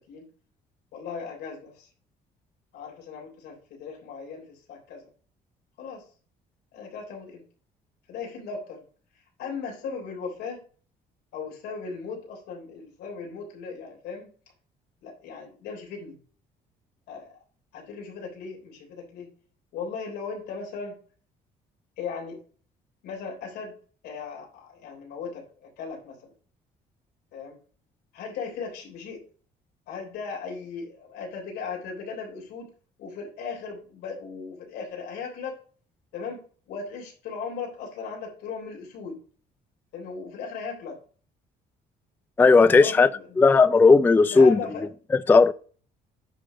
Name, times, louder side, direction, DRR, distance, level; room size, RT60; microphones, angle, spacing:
voice 1, 0.9-1.9 2.7-5.1 5.8-6.1 6.7-7.4 8.1-8.8 9.1-10.6 11.3-14.3 15.0-16.2 17.1-17.4 17.7-19.3 19.7-21.0 22.0-22.4 23.0-23.8 24.0-26.3 27.3-27.6 28.1-29.2 29.9-32.7 33.0-35.6 36.1-39.2 39.9-41.0 42.8-43.4 44.3-44.8, left 5 dB, 85° left, 3.4 m, -37 dB
voice 2, 42.4-43.1 43.4-44.6 45.3-45.5, left 4 dB, 10° left, 0.3 m, -15 dB
10.0 x 3.5 x 4.9 m
cardioid pair, 110°, 17 cm